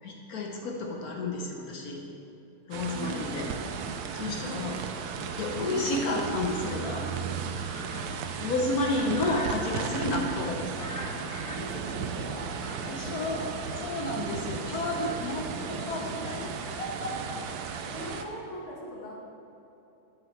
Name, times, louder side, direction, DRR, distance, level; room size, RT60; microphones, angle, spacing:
voice 1, 0.0-2.0 2.7-3.5 4.1-4.8 5.4-7.1 8.4-10.9 12.8-13.5 13.8-17.4, left 2 dB, 60° left, 1 dB, 1.1 m, -31 dB
sound 1, 2.7-18.2, right 6 dB, 80° right, 0.8 m, -35 dB
voice 2, 2.9-3.6 4.4-5.5 8.6-9.1 9.9-10.2 11.5-13.3 13.6-13.7 17.8-19.1, left 1 dB, 85° left, -3 dB, 2.4 m, -42 dB
sound 2, 6.5-15.8, left 1 dB, 30° left, 0.3 m, -46 dB
9.8 x 8.1 x 3.2 m, 2.9 s
omnidirectional pair, 2.2 m